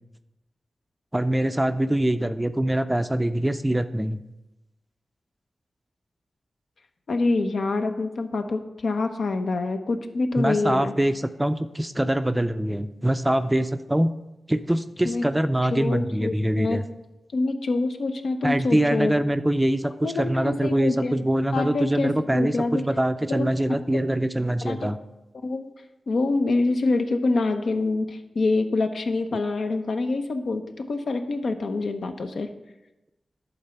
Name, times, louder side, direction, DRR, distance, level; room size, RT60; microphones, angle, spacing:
voice 1, 1.1-4.2 10.4-14.1 14.5-16.8 18.4-25.0 29.3-29.4, right 1 dB, 10° right, 10 dB, 0.4 m, -24 dB
voice 2, 7.1-10.9 15.0-15.2 15.7-16.8 17.3-19.1 20.0-21.2 21.5-22.8 23.3-23.5 24.6-24.8 25.4-25.7 26.1-30.6 30.9-32.5, left 3 dB, 75° left, 7 dB, 0.7 m, -26 dB
11.0 x 4.0 x 5.7 m, 0.96 s
wide cardioid pair, 90°, 0 cm